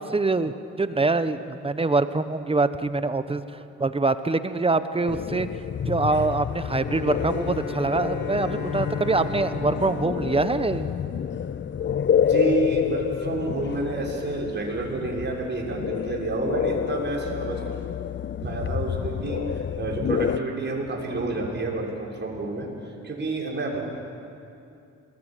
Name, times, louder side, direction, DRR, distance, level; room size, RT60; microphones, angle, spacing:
voice 1, 0.0-3.4 3.8-5.5 5.9-10.9, right 3 dB, 20° right, 11 dB, 1.2 m, -24 dB
sound 1, 5.1-20.4, left 8 dB, 40° left, 0.6 m, -28 dB
Bowed string instrument, 6.5-11.3, left 5 dB, 75° left, 2.7 m, -36 dB
voice 2, 12.3-17.6 18.4-23.8, right 3 dB, 35° right, -2 dB, 6.7 m, -29 dB
28.0 x 20.5 x 9.3 m, 2.6 s
cardioid pair, 90°, 30 cm